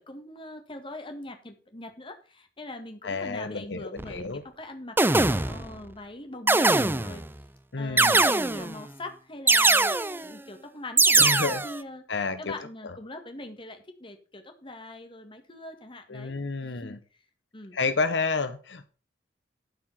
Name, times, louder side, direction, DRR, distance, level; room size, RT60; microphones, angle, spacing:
voice 1, 0.0-7.2 7.8-12.0 12.4-16.4 16.6-17.0 17.5-17.8, left 2 dB, 30° left, 6 dB, 1.7 m, -42 dB
voice 2, 3.0-4.4 7.7-8.3 11.2-11.6 12.1-12.5 12.8-12.9 16.1-17.0 17.7-18.9, left 4 dB, 80° left, 10 dB, 1.0 m, -30 dB
sound 1, 4.0-4.2 5.0-5.7 6.5-7.2 8.0-8.8 9.5-10.3 11.0-11.8, right 3 dB, 10° right, 0.5 m, -21 dB
11.5 x 4.9 x 7.2 m, 0.38 s
head